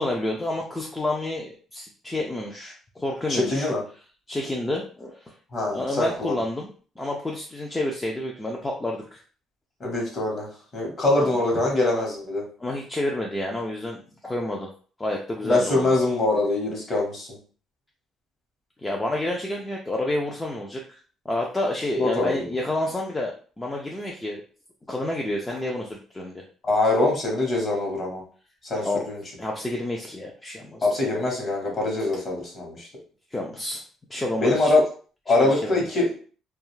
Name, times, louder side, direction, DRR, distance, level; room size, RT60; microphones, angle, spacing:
voice 1, 0.0-3.7 4.3-5.3 5.7-6.7 7.0-9.2 11.2-11.4 12.0-12.1 12.6-14.7 15.0-15.9 18.8-21.0 21.3-24.4 24.9-26.4 28.7-29.0 29.4-30.9 33.3-33.8 34.1-34.7 35.4-35.9, left 1 dB, 10° left, 0 dB, 0.3 m, -29 dB
voice 2, 3.3-3.8 5.5-6.3 9.8-12.4 15.4-17.3 22.0-22.5 26.7-28.2 28.6-29.2 30.8-32.9 34.4-34.8 35.3-36.1, left 2 dB, 35° left, -1 dB, 1.0 m, -23 dB
2.4 x 2.3 x 3.0 m, 0.41 s
cardioid pair, 150°, 0 cm